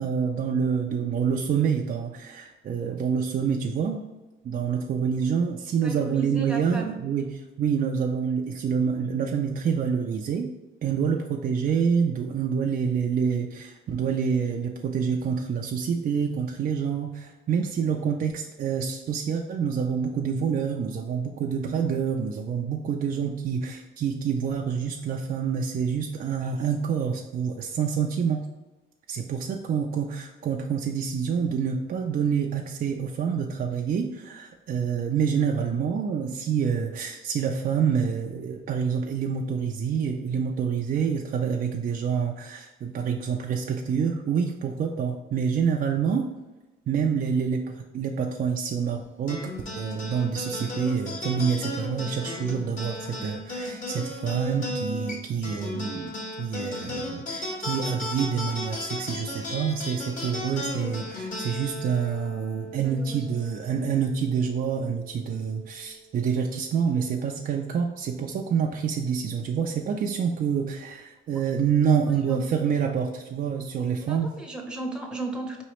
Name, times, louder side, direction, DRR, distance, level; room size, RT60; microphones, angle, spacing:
voice 1, 0.0-4.0 4.4-7.2 7.6-10.5 10.8-28.4 29.1-46.3 46.9-56.1 56.4-74.3, right 6 dB, 45° right, 2 dB, 0.4 m, -27 dB
voice 2, 5.8-7.0 62.8-63.3 71.3-71.4 72.2-72.4 74.0-75.6, right 2 dB, 5° right, 2 dB, 0.8 m, -35 dB
sound 1, 49.3-64.0, left 1 dB, 40° left, 1.5 m, -35 dB
4.7 x 3.1 x 3.0 m, 1.1 s
cardioid pair, 90°, 20 cm